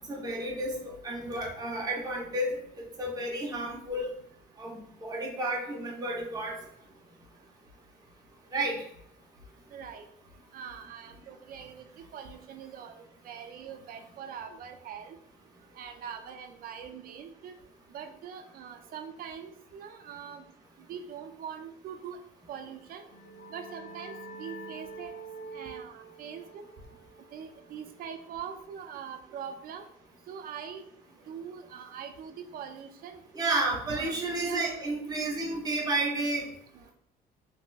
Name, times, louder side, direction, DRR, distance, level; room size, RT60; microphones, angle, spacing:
voice 1, 0.1-4.1 4.6-6.5 8.5-8.8 33.3-36.5, right 2 dB, 20° right, -2 dB, 0.9 m, -31 dB
voice 2, 9.7-10.1 10.5-15.2 15.7-17.6 17.9-20.4 20.9-22.2 22.5-23.0 23.5-25.1 25.5-26.6 27.3-29.8 30.3-30.9 31.3-33.2 33.9-34.9 36.7-36.9, right 7 dB, 60° right, 7 dB, 0.5 m, -43 dB
sound 1, 22.8-28.1, right 3 dB, 65° left, 0.5 m, -46 dB
3.2 x 2.9 x 2.3 m, 0.73 s
cardioid pair, 110°, 17 cm